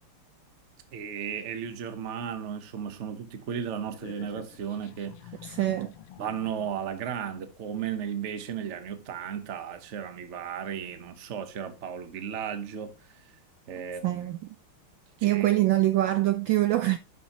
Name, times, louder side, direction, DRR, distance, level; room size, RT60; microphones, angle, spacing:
voice 1, 0.9-5.3 6.2-12.9 13.7-14.3 15.2-15.5, right 8 dB, 45° right, 1.0 m, -35 dB
sound 1, 3.9-7.0, left 10 dB, 90° left, 1.7 m, -48 dB
voice 2, 5.4-5.9 14.0-14.6 15.2-17.0, right 15 dB, 75° right, 1.2 m, -24 dB
11.0 x 6.2 x 3.0 m
omnidirectional pair, 2.4 m